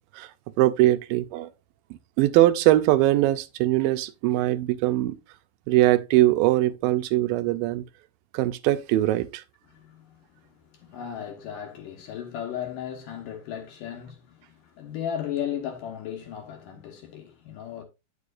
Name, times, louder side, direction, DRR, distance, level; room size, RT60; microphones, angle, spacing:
voice 1, 0.6-1.5 2.2-5.2 5.7-7.8 8.3-9.4, right 15 dB, 80° right, 2.2 m, -21 dB
voice 2, 9.7-17.8, left 9 dB, 70° left, 2.5 m, -36 dB
9.4 x 6.9 x 2.5 m
omnidirectional pair, 4.3 m